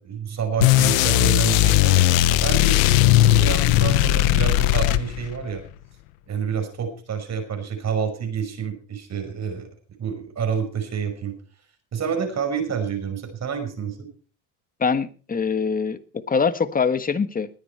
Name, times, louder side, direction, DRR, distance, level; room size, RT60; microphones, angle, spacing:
voice 1, 0.0-2.0 2.4-5.6 6.3-9.7 10.0-11.4 11.9-14.1, right 6 dB, 45° right, 5.7 m, -28 dB
sound 1, 0.6-5.4, left 15 dB, 90° left, 1.0 m, -18 dB
voice 2, 14.8-17.5, left 5 dB, 20° left, 1.4 m, -23 dB
20.0 x 9.8 x 4.6 m
supercardioid pair, 90°, 39 cm